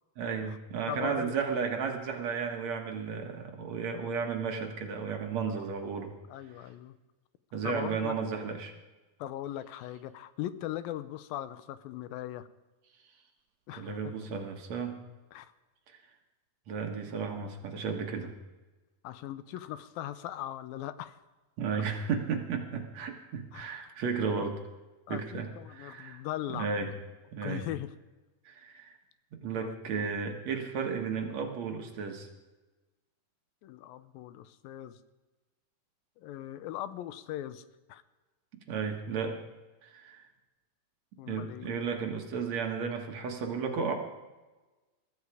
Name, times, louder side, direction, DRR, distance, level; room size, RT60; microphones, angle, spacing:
voice 1, 0.2-6.1 7.5-8.7 13.7-15.0 15.9-16.0 16.7-18.3 21.6-24.6 25.1-26.2 26.5-26.9 27.3-27.7 28.5-29.0 29.3-32.3 38.7-39.4 39.8-40.3 41.3-43.9, right 5 dB, 60° right, 4 dB, 2.4 m, -34 dB
voice 2, 0.9-1.3 5.5-5.7 6.3-7.0 7.6-8.2 9.2-12.5 13.7-14.0 15.3-15.5 19.0-21.2 21.7-21.8 23.5-23.8 25.1-26.7 27.4-27.9 29.5-30.1 33.6-35.0 36.2-37.6 37.9-38.0 41.2-41.8, left 13 dB, 85° left, 14 dB, 2.5 m, -39 dB
21.5 x 13.5 x 4.9 m, 1.2 s
omnidirectional pair, 4.1 m